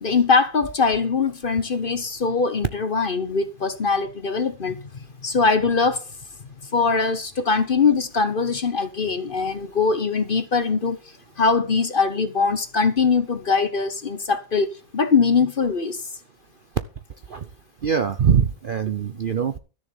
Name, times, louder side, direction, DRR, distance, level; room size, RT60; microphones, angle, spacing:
voice 1, 0.0-4.9 5.2-6.0 6.7-11.0 11.4-16.0, left 4 dB, 40° left, 1.0 m, -22 dB
voice 2, 17.8-19.6, right 7 dB, 50° right, 0.6 m, -22 dB
13.5 x 7.0 x 7.0 m
omnidirectional pair, 1.6 m